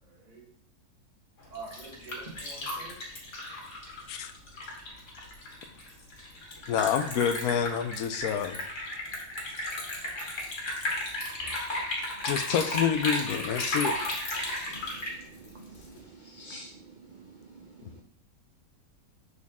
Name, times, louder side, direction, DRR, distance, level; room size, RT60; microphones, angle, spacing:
voice 1, 0.0-0.4 1.5-3.0, right 3 dB, 30° right, -4 dB, 1.4 m, -45 dB
Liquid, 1.4-16.0, left 1 dB, 55° left, 1.7 m, -34 dB
voice 2, 6.7-8.6 12.2-14.0, left 8 dB, 80° left, 9 dB, 1.1 m, -28 dB
voice 3, 14.7-16.7 17.1-18.0, right 2 dB, 75° right, 2 dB, 0.4 m, -49 dB
6.4 x 4.1 x 3.6 m, 0.62 s
omnidirectional pair, 1.6 m